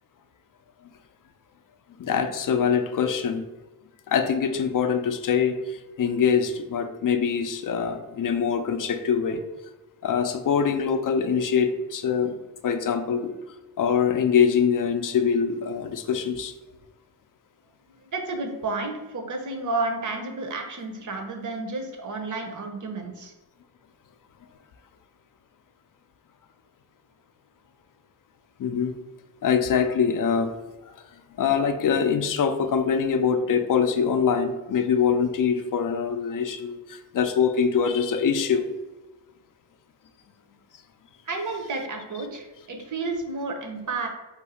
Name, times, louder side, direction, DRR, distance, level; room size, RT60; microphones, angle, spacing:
voice 1, 2.0-3.4 4.1-9.4 10.0-12.4 12.6-13.3 13.8-16.5 28.6-29.0 29.4-30.5 31.4-38.6, left 7 dB, 50° left, 8 dB, 0.4 m, -24 dB
voice 2, 17.9-23.3 41.2-44.1, right 3 dB, 45° right, 3 dB, 0.7 m, -31 dB
2.6 x 2.4 x 4.1 m, 1.1 s
cardioid pair, 70°, 44 cm